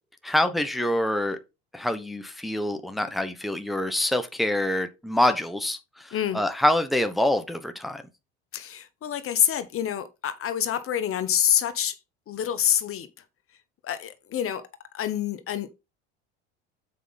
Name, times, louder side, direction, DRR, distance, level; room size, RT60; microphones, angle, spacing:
voice 1, 0.2-1.4 1.7-8.0, left 1 dB, ahead, 1.0 m, -26 dB
voice 2, 6.1-6.4 8.5-12.0 12.3-13.1 13.8-14.6 14.9-15.7, left 10 dB, 40° left, 1.0 m, -26 dB
7.6 x 4.9 x 4.0 m
supercardioid pair, 85°, 32 cm